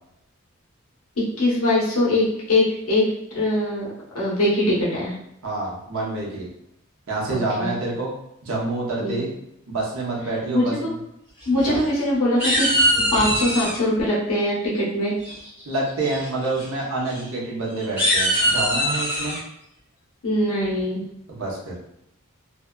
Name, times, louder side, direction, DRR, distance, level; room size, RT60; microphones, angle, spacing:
voice 1, 1.2-3.1 3.3-3.9 4.1-5.1 7.3-7.7 9.0-9.2 10.5-10.8 11.5-12.7 13.1-15.1 20.2-21.1, left 1 dB, 85° left, -6 dB, 1.0 m, -22 dB
voice 2, 5.4-6.5 7.1-8.1 8.4-9.3 9.7-10.9 11.6-11.8 15.7-19.4 21.3-21.7, right 2 dB, 70° right, -4 dB, 0.8 m, -27 dB
sound 1, 11.4-12.0 12.4-13.8 15.2-15.6 16.0-16.3 16.5-16.7 17.1-17.2 17.8-19.4, equal, 5° right, 0.9 m, -22 dB
2.6 x 2.3 x 2.2 m, 0.81 s
head